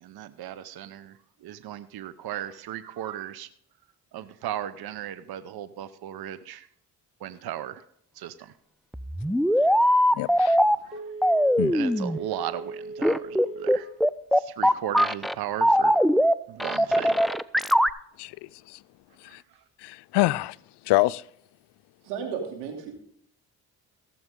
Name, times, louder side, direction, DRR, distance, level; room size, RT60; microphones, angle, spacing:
voice 1, 0.0-3.5 4.1-6.7 7.2-7.8 8.1-8.5 9.7-9.8 10.8-11.4 11.7-13.9 14.3-16.0 16.5-17.2 19.3-19.4, right 11 dB, 60° right, 14 dB, 0.8 m, -36 dB
sound 1, 8.9-10.7 11.2-12.2 13.0-15.3 15.6-16.3 16.6-17.9, equal, ahead, 0.5 m, -21 dB
voice 2, 10.1-10.6 11.6-11.7 18.2-18.4 18.7-18.8 19.3-19.4 19.8-20.6 20.9-21.2, left 18 dB, 75° left, 19 dB, 0.5 m, -25 dB
Telephone, 10.9-14.0 14.4-14.5, right 2 dB, 15° right, 6.1 m, -39 dB
voice 3, 22.0-22.9, right 6 dB, 90° right, 2 dB, 2.9 m, -33 dB
17.0 x 7.8 x 3.8 m, 0.68 s
supercardioid pair, 55°, 41 cm